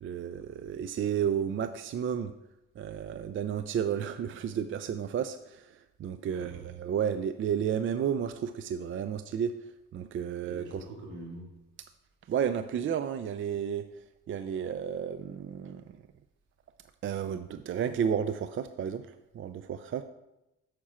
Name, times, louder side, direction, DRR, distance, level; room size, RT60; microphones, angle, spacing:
voice 1, 0.0-2.3 2.8-9.5 9.9-10.6 12.3-13.8 14.3-15.8 17.0-19.0 19.3-20.0, right 8 dB, 45° right, 10 dB, 0.4 m, -32 dB
voice 2, 6.2-6.7 10.4-11.5, right 1 dB, 75° right, -2 dB, 2.4 m, -44 dB
7.3 x 6.0 x 4.3 m, 0.93 s
cardioid pair, 90°, 30 cm